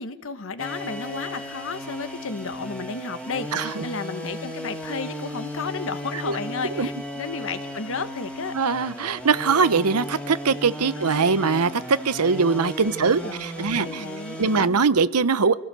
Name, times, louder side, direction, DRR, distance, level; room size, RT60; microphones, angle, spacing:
voice 1, 0.0-8.6 11.0-11.3 13.0-14.9, left 4 dB, 60° left, 11 dB, 1.3 m, -33 dB
sound 1, 0.6-14.7, equal, 5° left, 2.5 m, -35 dB
voice 2, 8.5-14.0 14.4-15.6, right 5 dB, 90° right, 15 dB, 0.9 m, -22 dB
27.0 x 17.0 x 6.9 m, 0.89 s
head